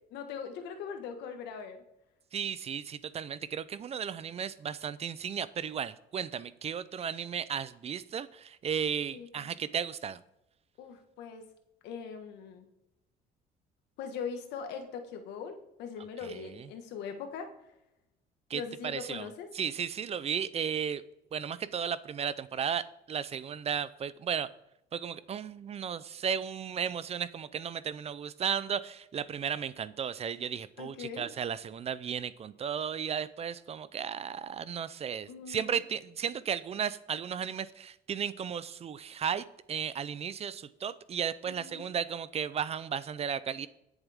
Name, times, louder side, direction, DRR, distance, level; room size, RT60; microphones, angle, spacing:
voice 1, 0.0-1.8 9.1-9.5 10.8-11.4 11.8-12.7 14.0-17.5 18.5-19.5 30.8-31.3 35.3-35.8 41.5-41.9, left 6 dB, 85° left, 6 dB, 1.6 m, -41 dB
voice 2, 2.3-10.2 16.2-16.7 18.5-19.3 19.5-21.0 21.3-24.5 24.9-43.7, right 7 dB, 35° right, 17 dB, 0.5 m, -35 dB
20.0 x 7.2 x 3.6 m, 0.88 s
cardioid pair, 110°, 17 cm